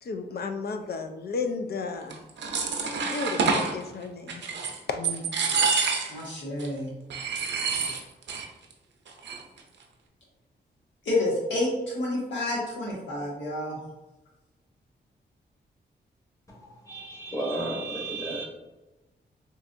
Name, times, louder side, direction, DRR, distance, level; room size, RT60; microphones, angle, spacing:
voice 1, 0.0-2.2 3.1-4.4 4.9-5.0, left 4 dB, 60° left, 6 dB, 0.4 m, -33 dB
sound 1, 2.1-3.7 4.3-4.8 5.0-6.3 6.6-6.7 7.1-8.5 8.7-8.8 9.1-9.6, right 5 dB, 80° right, 0.6 m, -27 dB
voice 2, 6.1-6.9 11.0-13.8, left 2 dB, 85° left, -5 dB, 1.2 m, -29 dB
voice 3, 16.9-18.5, right 2 dB, 20° left, -3 dB, 1.3 m, -32 dB
3.9 x 2.4 x 2.5 m, 1.1 s
cardioid pair, 65°, 19 cm